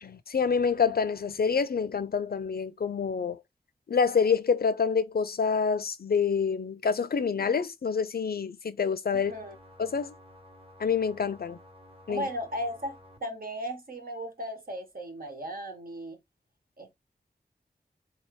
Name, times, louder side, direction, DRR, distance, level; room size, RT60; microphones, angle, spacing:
voice 1, 0.0-3.4 3.9-9.3 9.8-10.1 10.8-11.6 12.1-12.3, left 6 dB, 70° left, 0.5 m, -27 dB
sound 1, 9.1-13.2, left 1 dB, 35° right, 1.2 m, -53 dB
voice 2, 9.1-9.6 12.1-16.2 16.8-16.9, equal, 65° right, 1.2 m, -36 dB
3.7 x 2.8 x 3.2 m
wide cardioid pair, 60°, 16 cm